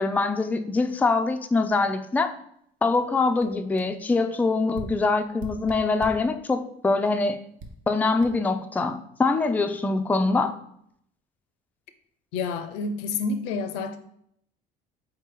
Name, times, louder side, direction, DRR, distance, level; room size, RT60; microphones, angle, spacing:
voice 1, 0.0-2.3 2.8-7.4 7.9-10.5, left 3 dB, 10° left, 0.3 m, -24 dB
sound 1, 2.9-3.0 3.4-3.5 3.8-3.9 4.7-6.3 7.0-7.2 7.6-7.8 8.2-8.3, right 2 dB, 55° right, 0.7 m, -40 dB
voice 2, 12.3-14.0, left 4 dB, 85° left, 0.5 m, -29 dB
4.3 x 2.9 x 3.6 m
supercardioid pair, 95°, 17 cm